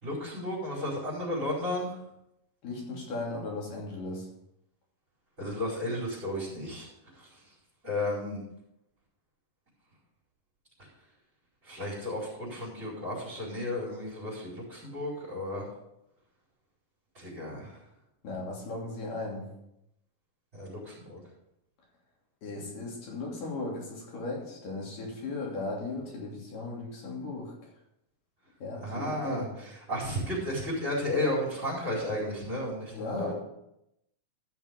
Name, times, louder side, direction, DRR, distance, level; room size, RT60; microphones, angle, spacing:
voice 1, 0.0-1.9 5.4-6.9 7.1-7.3 7.8-8.4 11.6-15.7 17.1-17.8 20.5-21.2 28.8-33.3, left 1 dB, 20° right, -10 dB, 5.1 m, -33 dB
voice 2, 2.6-4.3 18.2-19.4 22.4-27.7 28.6-29.5 32.9-33.3, left 2 dB, 75° left, -2 dB, 4.5 m, -36 dB
15.0 x 6.2 x 5.3 m, 0.83 s
omnidirectional pair, 3.8 m